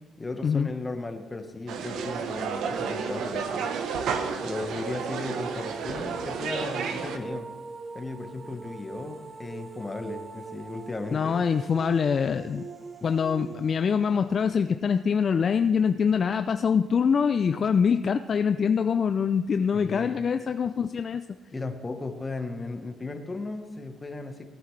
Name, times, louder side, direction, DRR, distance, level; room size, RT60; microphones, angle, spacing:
voice 1, 0.2-3.7 4.4-7.5 7.9-11.4 19.7-20.2 21.5-24.4, left 3 dB, 25° left, 6 dB, 1.2 m, -36 dB
sound 1, 1.7-7.2, right 6 dB, 80° right, 1.0 m, -31 dB
sound 2, 2.8-15.7, right 4 dB, 30° right, 0.8 m, -43 dB
voice 2, 11.1-12.6 13.0-21.2, left 6 dB, 50° left, 9 dB, 0.4 m, -24 dB
18.0 x 9.6 x 3.3 m, 1.3 s
cardioid pair, 90°, 0 cm